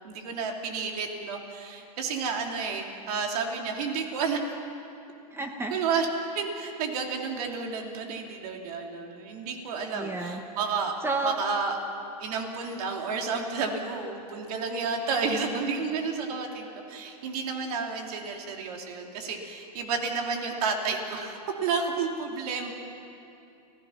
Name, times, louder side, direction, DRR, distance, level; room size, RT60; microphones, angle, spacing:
voice 1, 0.0-4.4 5.7-6.1 6.3-10.9 11.2-11.8 12.2-22.7, right 5 dB, 65° right, 2 dB, 3.2 m, -31 dB
voice 2, 5.3-5.7 9.9-10.4 11.0-11.4, right 2 dB, 10° right, 5 dB, 1.2 m, -30 dB
29.0 x 16.5 x 5.8 m, 2.7 s
supercardioid pair, 140°, 21 cm